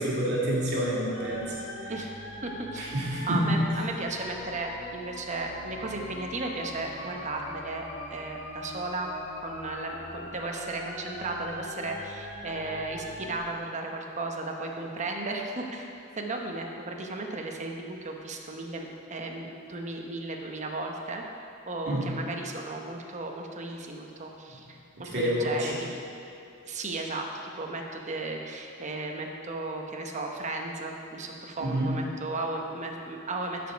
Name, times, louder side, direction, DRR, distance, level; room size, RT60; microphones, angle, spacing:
voice 1, 0.0-1.6 1.8-1.9 2.8-3.7 21.9-22.1 25.0-25.8 31.6-32.0, equal, 55° right, -6 dB, 2.4 m, -28 dB
sound 1, 1.1-13.4, left 1 dB, 80° left, 1.7 m, -41 dB
voice 2, 2.4-2.9 3.3-7.8 8.1-9.1 9.4-15.9 16.2-21.2 21.7-25.7 26.6-27.3 27.5-33.7, right 2 dB, 35° right, 2 dB, 0.9 m, -35 dB
12.0 x 5.2 x 5.2 m, 2.6 s
head